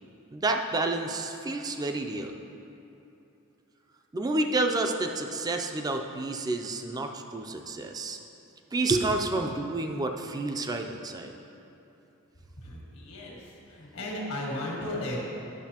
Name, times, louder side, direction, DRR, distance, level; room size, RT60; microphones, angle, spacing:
voice 1, 0.3-2.3 4.1-8.2 8.7-11.3, right 2 dB, 20° right, 4 dB, 0.3 m, -29 dB
voice 2, 12.6-13.4 13.7-15.2, left 1 dB, 85° left, -3 dB, 1.5 m, -35 dB
10.0 x 6.4 x 2.9 m, 2.9 s
head